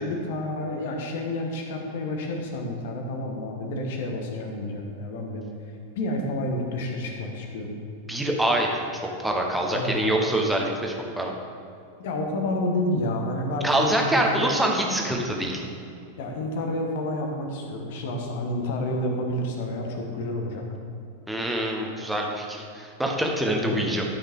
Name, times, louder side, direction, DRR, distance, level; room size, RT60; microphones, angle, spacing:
voice 1, 0.0-5.5 5.9-7.7 9.7-10.3 12.0-14.5 16.2-20.6 23.5-23.8, left 1 dB, 55° left, 2 dB, 1.4 m, -29 dB
voice 2, 8.1-8.9 9.2-11.3 13.6-15.6 21.3-24.0, right 1 dB, 5° right, 0 dB, 1.2 m, -25 dB
12.0 x 5.7 x 3.7 m, 2.5 s
figure-of-eight pair, 90°, 0 cm